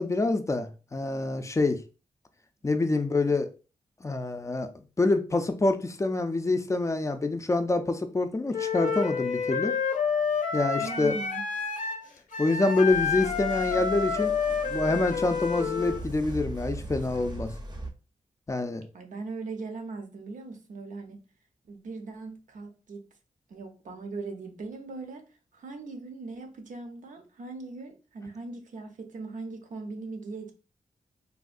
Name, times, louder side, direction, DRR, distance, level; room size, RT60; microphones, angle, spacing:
voice 1, 0.0-1.8 2.6-3.5 4.0-4.7 5.0-9.7 10.5-11.2 12.4-14.3 14.6-17.5 18.5-18.9, left 2 dB, 20° left, 0.4 m, -26 dB
Wind instrument woodwind instrument, 8.5-16.0, left 6 dB, 75° left, 0.5 m, -29 dB
voice 2, 10.8-11.4 18.9-21.2 21.7-23.0 23.5-25.3 25.5-30.5, right 3 dB, 75° right, 0.6 m, -39 dB
sound 1, 12.9-17.9, right 1 dB, 30° right, 0.6 m, -39 dB
3.5 x 2.2 x 2.4 m
cardioid pair, 85°, 14 cm